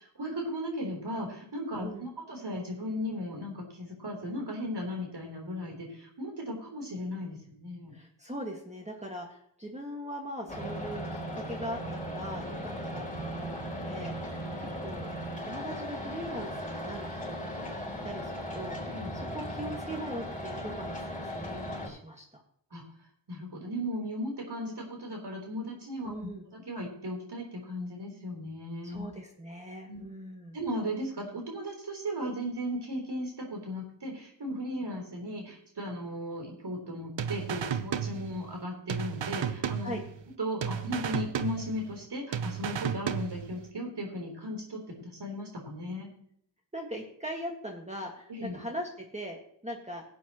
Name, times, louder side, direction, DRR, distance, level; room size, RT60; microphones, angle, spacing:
voice 1, 0.2-7.9 18.9-19.2 22.7-22.8 23.3-29.1 29.9-30.0 30.5-40.0 40.4-46.1 48.3-48.6, equal, 65° right, 1 dB, 3.8 m, -36 dB
voice 2, 7.9-11.8 12.1-22.4 26.0-26.5 28.8-30.6 39.8-40.0 46.7-50.0, equal, 15° right, 0 dB, 1.7 m, -41 dB
sound 1, 10.5-21.9, equal, 20° left, 4.8 m, -37 dB
sound 2, 37.2-38.6 38.9-40.3 40.6-42.0 42.3-43.7, right 8 dB, 85° right, 0.8 m, -34 dB
17.5 x 8.4 x 3.0 m, 0.65 s
wide cardioid pair, 100°, 44 cm